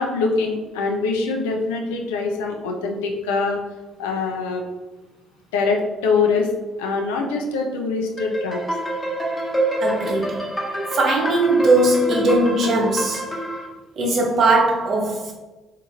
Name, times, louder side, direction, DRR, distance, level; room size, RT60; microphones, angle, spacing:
voice 1, 0.0-3.6 4.0-4.6 5.5-6.5 6.8-8.6, left 4 dB, 85° left, 2 dB, 0.4 m, -23 dB
sound 1, 8.2-13.7, right 1 dB, 15° left, 1.0 m, -26 dB
voice 2, 9.8-10.5 10.9-13.3 14.0-15.3, right 2 dB, 55° right, 0 dB, 0.7 m, -19 dB
2.7 x 2.5 x 2.8 m, 1.1 s
hypercardioid pair, 50°, 0 cm